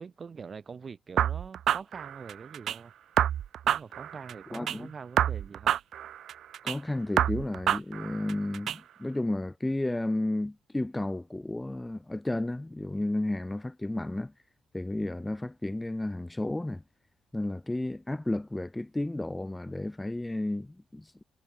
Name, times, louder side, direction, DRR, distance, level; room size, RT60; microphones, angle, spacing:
voice 1, 0.0-2.9 3.6-5.7, right 5 dB, 40° right, 6.9 m, -44 dB
sound 1, 1.2-2.8 3.2-4.8 5.2-6.8 7.2-8.8, right 10 dB, 70° right, 0.9 m, -28 dB
voice 2, 4.5-4.9 6.6-14.3 14.7-16.8 17.3-21.2, left 1 dB, 10° left, 3.3 m, -32 dB
cardioid pair, 90°, 0 cm